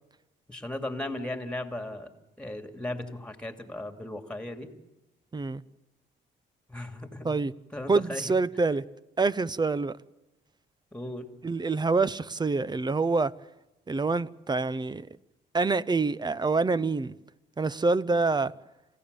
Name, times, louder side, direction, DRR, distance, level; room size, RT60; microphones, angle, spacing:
voice 1, 0.5-2.1 2.4-4.7 6.7-7.4 7.7-8.3 10.9-11.3, left 1 dB, 5° left, 2.7 m, -36 dB
voice 2, 7.9-8.8 9.2-10.0 11.4-13.3 13.9-15.1 15.5-17.1 17.6-18.5, right 3 dB, 20° right, 0.7 m, -26 dB
28.0 x 16.0 x 6.9 m
cardioid pair, 90°, 20 cm